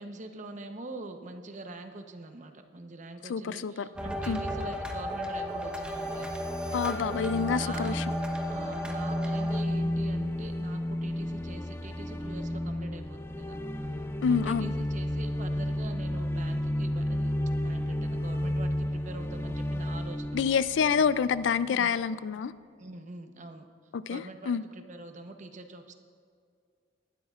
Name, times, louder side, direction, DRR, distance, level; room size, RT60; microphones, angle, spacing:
voice 1, 0.0-6.4 7.2-8.0 8.5-13.6 14.3-17.3 17.6-20.4 21.0-21.1 21.7-21.9 22.8-23.7 24.1-26.0, right 2 dB, 40° right, 6 dB, 0.9 m, -44 dB
voice 2, 3.3-3.9 4.3-4.4 6.7-8.0 14.2-14.7 20.3-22.5 23.9-24.6, left 6 dB, 75° left, 16 dB, 0.4 m, -27 dB
sound 1, 4.0-9.6, equal, 5° right, 1.0 m, -35 dB
sound 2, 5.6-21.7, left 1 dB, 15° left, 0.4 m, -32 dB
19.0 x 12.5 x 2.4 m, 2.3 s
head